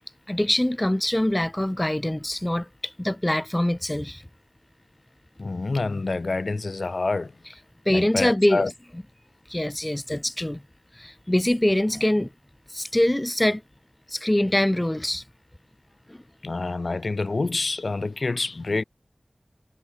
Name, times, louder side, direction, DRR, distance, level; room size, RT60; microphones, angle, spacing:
voice 1, 0.3-4.2 7.9-8.6 9.5-10.6 11.0-12.3 12.7-13.6 14.1-15.2, left 1 dB, 20° left, 0.9 m, -24 dB
voice 2, 5.4-7.3 7.9-8.7 16.4-18.8, left 3 dB, 75° left, 3.0 m, -27 dB
wide cardioid pair, 45°, 0 cm